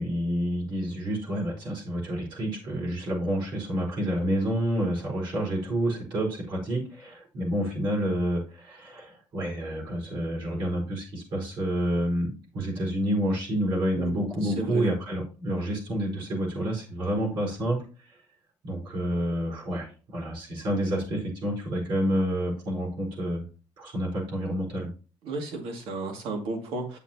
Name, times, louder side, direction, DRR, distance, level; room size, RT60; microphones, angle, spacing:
voice 1, 0.0-17.8 18.1-18.2 18.6-23.5 23.8-24.9, equal, 55° right, -2 dB, 4.7 m, -29 dB
voice 2, 14.4-14.9 25.2-27.0, right 3 dB, 75° right, 3 dB, 2.3 m, -33 dB
8.8 x 7.0 x 2.9 m, 0.37 s
cardioid pair, 140°, 9 cm